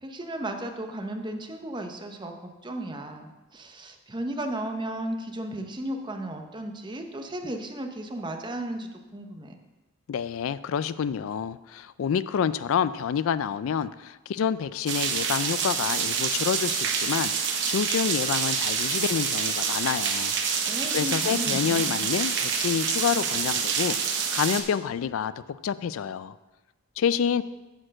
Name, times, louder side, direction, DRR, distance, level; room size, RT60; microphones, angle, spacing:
voice 1, 0.0-9.6 20.6-22.1, right 1 dB, 20° right, 5 dB, 0.7 m, -35 dB
voice 2, 10.1-20.4 20.6-26.4 27.0-27.4, left 7 dB, 80° left, 16 dB, 0.3 m, -28 dB
sound 1, 14.9-24.6, right 6 dB, 60° right, 1.0 m, -27 dB
9.2 x 4.5 x 7.5 m, 1.1 s
head